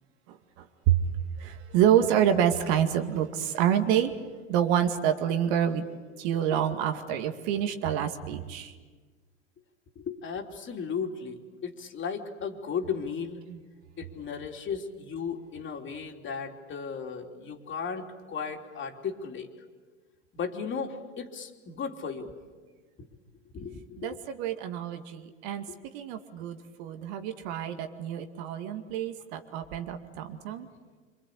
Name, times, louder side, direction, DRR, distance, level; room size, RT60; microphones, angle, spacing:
voice 1, 0.3-1.0 1.4-4.1 4.5-5.8 6.2-8.7 13.5-13.6 24.0-25.7 25.9-30.7, right 9 dB, 55° right, 2.2 m, -27 dB
voice 2, 9.9-13.4 14.0-19.5 20.3-22.3 23.5-24.2 25.7-25.8, left 6 dB, 30° left, 3.4 m, -35 dB
26.5 x 25.5 x 8.6 m
hypercardioid pair, 95°, 37 cm